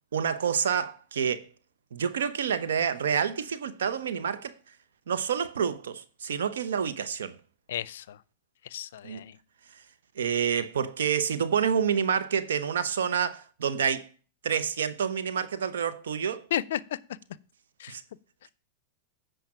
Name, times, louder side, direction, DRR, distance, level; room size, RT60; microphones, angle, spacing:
voice 1, 0.1-1.5 1.9-4.5 5.1-7.3 9.0-9.2 10.2-14.1 14.4-16.4 17.9-18.0, right 7 dB, 85° right, 0.9 m, -28 dB
voice 2, 7.7-8.2 8.6-9.4 16.5-17.0 17.8-18.0, left 11 dB, 75° left, 0.5 m, -33 dB
8.9 x 5.1 x 5.8 m
hypercardioid pair, 120°, 0 cm